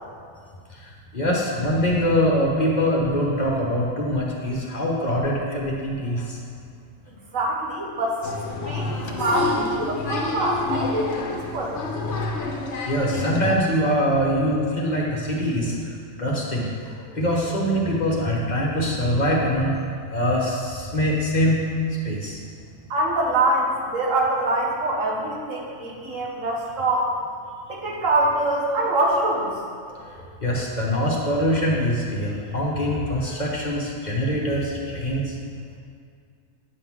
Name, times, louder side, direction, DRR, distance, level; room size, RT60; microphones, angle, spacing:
voice 1, 0.7-6.4 12.9-19.8 20.1-21.6 22.0-22.4 29.8-35.4, equal, 35° left, -3 dB, 1.0 m, -24 dB
voice 2, 7.1-11.8 22.9-27.1 27.7-29.5, right 2 dB, 85° right, -2 dB, 1.5 m, -24 dB
Applause, 8.2-13.5, left 3 dB, 65° left, 1.0 m, -28 dB
9.0 x 3.7 x 6.1 m, 2.2 s
omnidirectional pair, 1.3 m